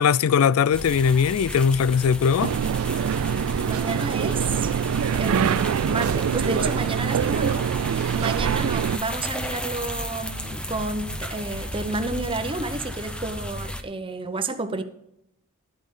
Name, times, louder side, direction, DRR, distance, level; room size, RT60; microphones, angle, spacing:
voice 1, 0.0-2.5, left 6 dB, 75° left, 0.4 m, -20 dB
sound 1, 0.7-13.8, equal, 5° left, 0.7 m, -34 dB
sound 2, 2.4-9.0, right 8 dB, 75° right, 0.3 m, -24 dB
voice 2, 3.6-4.7 5.2-14.8, right 2 dB, 25° right, 0.9 m, -30 dB
12.5 x 8.6 x 3.8 m
head